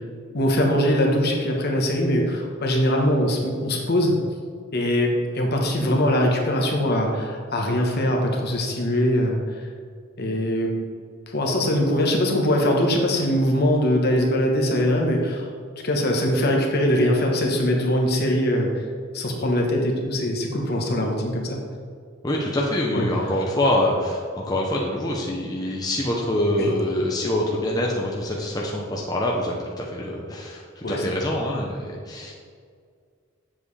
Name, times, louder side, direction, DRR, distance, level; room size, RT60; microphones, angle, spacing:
voice 1, 0.3-4.1 4.7-9.6 10.2-10.7 11.3-15.5 15.8-18.8 19.1-21.6 22.9-23.1 26.6-26.7 30.8-31.2, equal, 55° left, 1 dB, 1.2 m, -22 dB
voice 2, 22.2-32.3, left 1 dB, 20° left, -3 dB, 0.7 m, -25 dB
7.6 x 7.3 x 3.3 m, 2.1 s
head